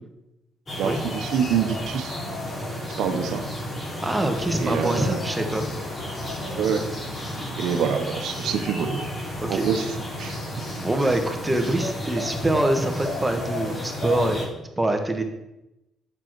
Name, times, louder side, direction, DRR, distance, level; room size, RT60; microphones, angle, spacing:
sound 1, 0.7-14.5, left 1 dB, 35° left, 2.8 m, -32 dB
voice 1, 0.8-2.2 3.0-3.5 4.6-5.2 6.6-6.8 7.6-9.1 9.5-10.4, right 7 dB, 80° right, 8 dB, 0.8 m, -26 dB
voice 2, 4.0-5.7 9.4-9.7 10.8-14.5 14.8-15.2, right 1 dB, 15° right, 5 dB, 1.2 m, -24 dB
6.9 x 6.3 x 4.6 m, 0.94 s
cardioid pair, 90°, 0 cm